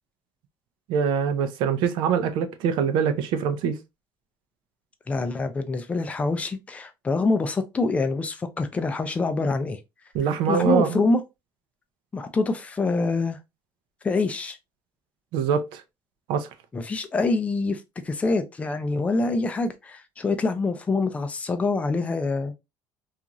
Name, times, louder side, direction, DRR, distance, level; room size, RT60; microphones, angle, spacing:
voice 1, 0.9-3.8 10.1-11.0 15.3-15.8 16.3-16.5, right 7 dB, 75° right, 0.5 m, -24 dB
voice 2, 5.1-9.8 10.5-11.2 12.1-13.4 14.0-14.6 16.7-22.5, left 3 dB, 15° left, 0.4 m, -25 dB
2.9 x 2.4 x 2.5 m
cardioid pair, 160°, 8 cm